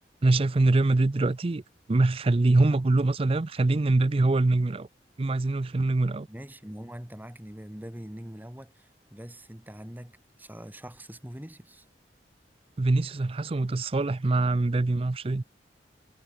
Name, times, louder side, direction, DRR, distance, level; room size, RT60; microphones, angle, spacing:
voice 1, 0.2-1.6 1.9-4.9 5.2-6.3 12.8-15.4, right 2 dB, 35° right, 0.5 m, -24 dB
voice 2, 6.3-11.9, equal, 10° right, 2.0 m, -43 dB
head